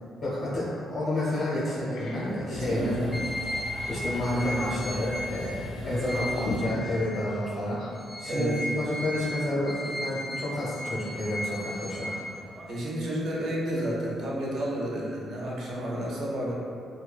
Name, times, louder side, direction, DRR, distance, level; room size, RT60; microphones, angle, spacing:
voice 1, 0.2-3.1 3.9-7.8 8.2-12.1, left 1 dB, 55° left, -9 dB, 0.7 m, -30 dB
sound 1, 0.7-0.8 1.3-1.4 1.7-8.1, left 1 dB, 85° left, 0.3 m, -40 dB
sound 2, 2.2-7.4, left 1 dB, 90° right, 1.2 m, -42 dB
voice 2, 2.5-3.2 5.8-6.1 8.3-8.6 12.7-16.5, equal, 70° right, -5 dB, 0.6 m, -31 dB
sound 3, 3.1-7.5 7.9-12.8, left 1 dB, ahead, 0.4 m, -36 dB
2.6 x 2.2 x 2.2 m, 2.4 s
cardioid pair, 90°, 0 cm